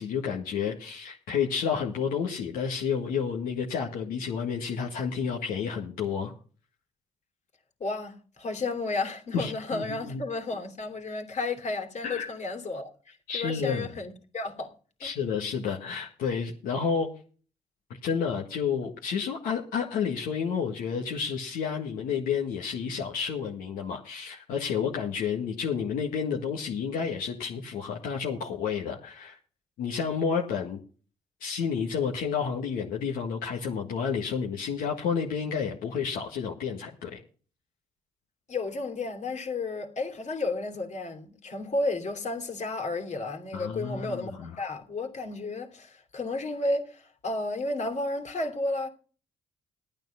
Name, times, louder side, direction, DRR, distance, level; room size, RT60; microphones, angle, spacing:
voice 1, 0.0-6.3 9.3-10.2 12.0-12.3 13.3-13.9 15.0-17.1 18.0-29.4 29.8-30.8 31.4-37.2 43.5-44.5, left 6 dB, 80° left, 1.7 m, -30 dB
voice 2, 7.8-14.7 15.0-15.1 38.5-48.9, left 2 dB, 55° left, 2.8 m, -32 dB
13.0 x 9.1 x 5.7 m
supercardioid pair, 55°, 15 cm